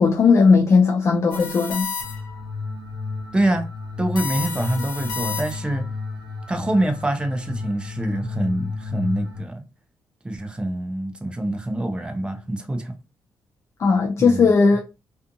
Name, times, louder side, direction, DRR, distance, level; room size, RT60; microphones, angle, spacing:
voice 1, 0.0-1.9 13.8-14.8, left 4 dB, 40° left, 0.3 m, -17 dB
sound 1, 1.3-2.4 4.2-5.8, left 5 dB, 85° left, 0.8 m, -31 dB
sound 2, 2.0-9.4, left 4 dB, 65° right, 0.8 m, -32 dB
voice 2, 3.3-3.7 4.0-5.8 6.5-9.6 10.2-13.0 14.2-14.5, right 1 dB, 15° right, 0.5 m, -25 dB
2.6 x 2.4 x 2.6 m
cardioid pair, 120°, 8 cm